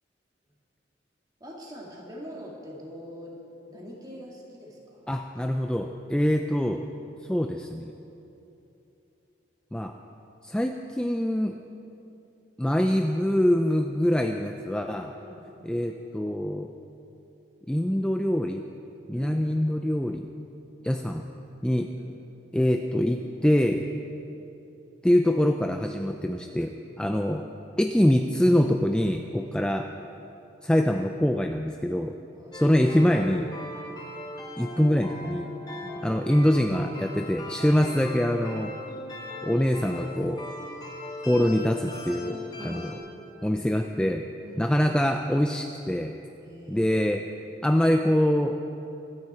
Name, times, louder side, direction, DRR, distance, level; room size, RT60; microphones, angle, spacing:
voice 1, 1.4-3.4 3.7-5.1 15.2-15.4 19.1-19.4 22.0-22.1 29.4-29.6 32.3-32.6 33.7-33.9 35.7-36.0 42.6-42.9 44.4-44.7 46.4-46.9, equal, 20° right, -3 dB, 2.3 m, -43 dB
voice 2, 5.1-6.8 7.3-7.9 9.7-9.9 10.4-11.6 12.6-15.1 15.6-16.7 17.7-18.6 19.1-20.3 20.8-21.2 21.6-21.9 22.5-23.9 25.0-27.4 27.8-29.9 30.6-32.2 32.5-33.5 34.6-35.5 36.0-38.7 39.4-40.4 41.3-42.4 42.6-42.9 43.4-44.2 44.6-46.1 46.7-47.2 47.6-48.6, equal, 5° left, 4 dB, 0.4 m, -24 dB
sound 1, 32.5-42.9, left 1 dB, 20° left, 1.6 m, -39 dB
25.0 x 9.8 x 4.4 m, 2.9 s
head